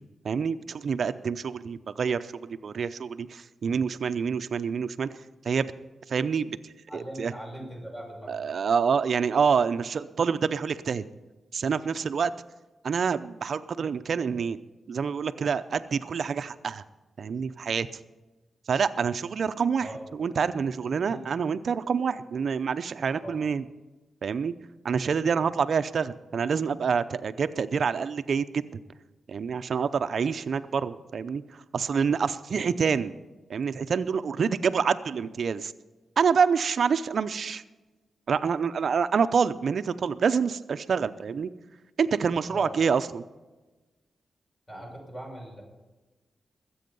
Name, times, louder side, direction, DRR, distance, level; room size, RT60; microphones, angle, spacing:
voice 1, 0.2-5.2 5.4-5.7 6.1-7.3 8.3-11.0 11.5-12.3 12.8-14.6 14.9-16.8 17.2-17.9 18.7-23.6 24.2-24.5 24.8-28.8 29.3-33.1 33.5-35.7 36.2-37.6 38.3-41.5 42.0-43.2, right 6 dB, 65° right, 12 dB, 0.6 m, -27 dB
voice 2, 6.9-8.4 19.8-20.0 21.1-21.2 23.2-23.4 42.5-42.7 44.7-45.6, equal, 25° left, 0 dB, 6.5 m, -40 dB
21.0 x 8.5 x 5.4 m, 1.2 s
cardioid pair, 70°, 0 cm